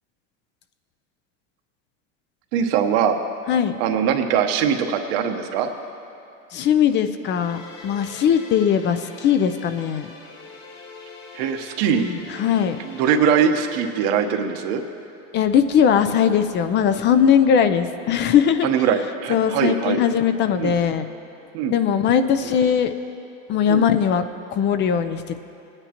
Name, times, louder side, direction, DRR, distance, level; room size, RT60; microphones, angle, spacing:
voice 1, 2.5-3.2 3.8-5.7 11.3-12.1 12.8-14.8 18.6-20.0 20.6-20.8 21.5-21.8 22.4-22.6 23.7-23.9, right 7 dB, 70° right, 5 dB, 1.0 m, -21 dB
voice 2, 6.5-10.1 12.0-12.8 15.3-18.7 19.3-21.1 21.7-22.9 23.5-24.2 24.5-25.4, left 8 dB, 35° left, 10 dB, 0.5 m, -20 dB
sound 1, 7.2-13.2, left 3 dB, 65° left, 1.9 m, -43 dB
19.0 x 9.7 x 2.9 m, 2.9 s
supercardioid pair, 135°, 31 cm